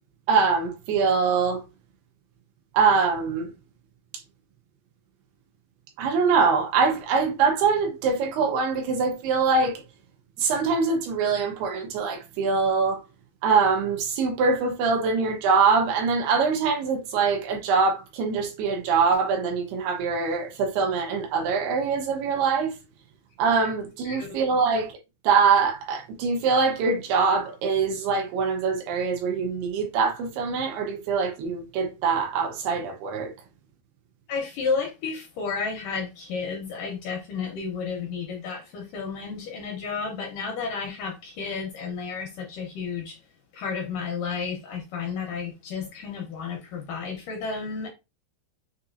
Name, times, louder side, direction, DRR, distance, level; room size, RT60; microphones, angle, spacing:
voice 1, 0.3-1.6 2.7-3.5 6.0-9.8 10.4-13.0 13.4-22.7 23.4-24.9 25.2-33.3, right 5 dB, 85° right, 3.0 m, -23 dB
voice 2, 34.3-43.2 43.5-47.9, left 5 dB, 70° left, 2.2 m, -32 dB
6.6 x 2.8 x 2.6 m
omnidirectional pair, 4.5 m